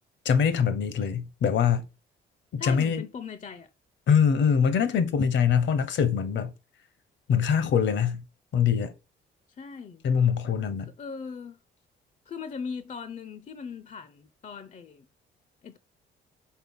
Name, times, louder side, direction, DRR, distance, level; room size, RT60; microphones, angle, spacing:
voice 1, 0.2-1.9 2.5-3.0 4.1-6.5 7.3-8.2 8.5-8.9 10.0-10.9, left 7 dB, 65° left, 1.0 m, -23 dB
voice 2, 2.6-3.7 9.5-10.0 10.8-11.6 12.3-15.1 15.6-15.8, left 5 dB, 40° left, 0.6 m, -39 dB
4.6 x 3.8 x 5.5 m
cardioid pair, 90°, 20 cm